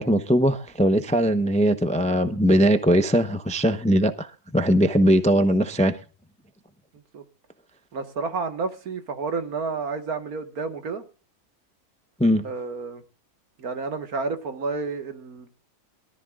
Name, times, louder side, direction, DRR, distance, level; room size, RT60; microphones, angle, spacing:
voice 1, 0.0-5.9 12.2-12.4, equal, 5° left, 0.6 m, -20 dB
voice 2, 7.9-11.0 12.4-13.0 13.6-15.5, right 4 dB, 75° right, 2.0 m, -30 dB
23.0 x 13.5 x 2.4 m
omnidirectional pair, 1.6 m